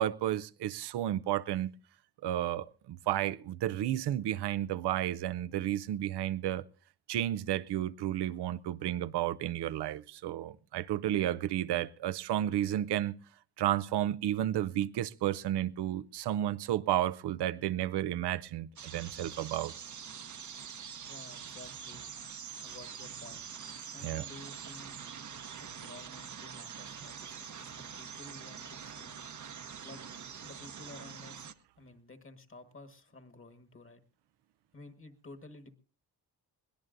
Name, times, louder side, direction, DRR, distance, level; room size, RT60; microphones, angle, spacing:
voice 1, 0.0-1.7 2.2-6.7 7.1-13.2 13.6-19.7 24.0-24.2, right 12 dB, 80° right, 0.6 m, -32 dB
sound 1, 18.8-31.5, right 7 dB, 45° right, 0.9 m, -45 dB
voice 2, 21.1-22.3 22.6-23.5 23.9-25.0 25.6-29.3 29.8-30.0 30.4-31.5 31.8-34.0 34.7-35.8, left 2 dB, 30° left, 1.5 m, -52 dB
22.0 x 17.5 x 2.6 m
cardioid pair, 65°, 40 cm